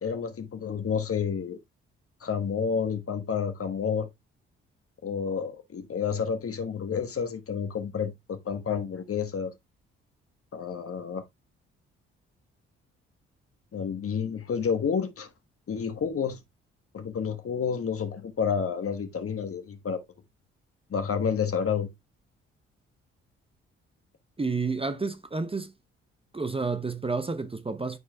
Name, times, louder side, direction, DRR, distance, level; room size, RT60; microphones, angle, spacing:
voice 1, 0.0-1.6 2.2-4.1 5.0-9.5 10.5-11.2 13.7-15.3 15.7-16.4 16.9-20.0 20.9-21.9, left 6 dB, 45° left, 1.4 m, -30 dB
voice 2, 24.4-25.7 26.3-28.0, right 4 dB, 15° right, 0.8 m, -30 dB
11.0 x 4.6 x 2.3 m
hypercardioid pair, 40°, 32 cm